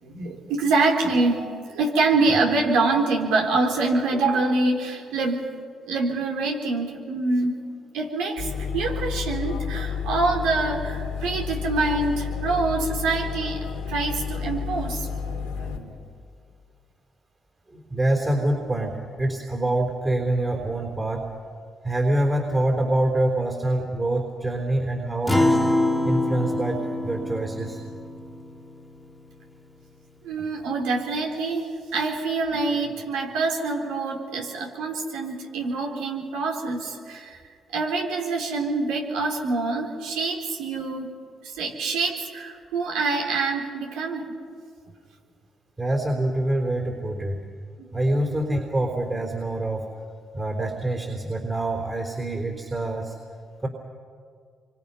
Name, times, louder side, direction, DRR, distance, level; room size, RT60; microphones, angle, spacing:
voice 1, 0.0-5.4 5.8-7.6 7.9-16.0 27.2-27.3 30.2-37.4 37.7-41.1 41.4-44.4 47.8-47.9 48.3-48.4, right 3 dB, 80° right, 0 dB, 3.6 m, -25 dB
sound 1, 8.4-15.8, left 7 dB, 85° left, 2.5 m, -31 dB
voice 2, 17.7-21.3 21.8-25.6 26.0-27.8 45.8-47.4 47.9-49.9 50.3-53.2 53.6-53.7, right 1 dB, 30° right, 1 dB, 4.0 m, -25 dB
Acoustic guitar, 25.3-30.0, left 1 dB, 5° left, 2.3 m, -26 dB
28.0 x 25.0 x 5.7 m, 2.2 s
hypercardioid pair, 50°, 0 cm